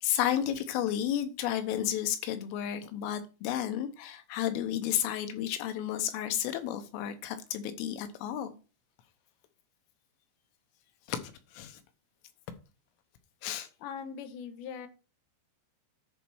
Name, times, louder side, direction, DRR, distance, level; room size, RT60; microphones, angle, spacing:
voice 1, 0.0-8.6 11.1-11.8 13.4-13.7, left 11 dB, 90° left, 3.6 m, -32 dB
voice 2, 13.8-14.9, left 7 dB, 75° left, 3.2 m, -40 dB
10.5 x 4.2 x 6.3 m
omnidirectional pair, 5.5 m